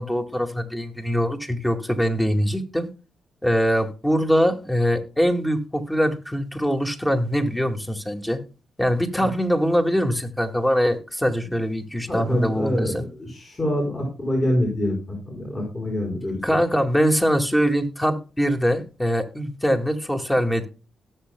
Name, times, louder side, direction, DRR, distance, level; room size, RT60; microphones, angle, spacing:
voice 1, 0.0-2.9 3.4-8.4 8.8-13.0 16.4-20.7, equal, 10° left, 5 dB, 1.9 m, -23 dB
voice 2, 12.1-16.4, left 1 dB, 35° left, 0 dB, 4.8 m, -25 dB
18.0 x 6.6 x 2.2 m, 0.33 s
supercardioid pair, 50°, 0 cm